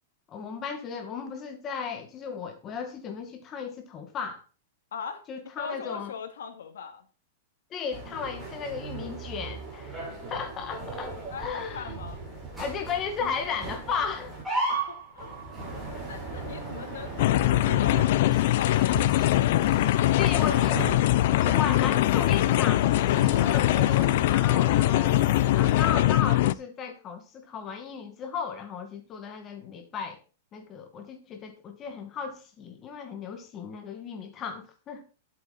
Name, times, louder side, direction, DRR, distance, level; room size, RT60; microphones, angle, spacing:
voice 1, 0.3-4.4 5.3-6.1 7.7-10.0 10.3-12.0 12.6-14.3 20.2-20.8 21.3-23.1 23.4-30.2 30.5-35.0, left 6 dB, 20° left, 2.0 m, -35 dB
voice 2, 4.9-5.3 5.6-7.1 11.3-12.2 14.7-15.3 16.0-20.7, left 6 dB, 85° left, 2.5 m, -40 dB
sound 1, 7.9-25.9, right 2 dB, 10° right, 6.5 m, -37 dB
sound 2, 17.2-26.5, left 15 dB, 55° left, 0.5 m, -22 dB
11.5 x 8.0 x 4.2 m
supercardioid pair, 160°, 0 cm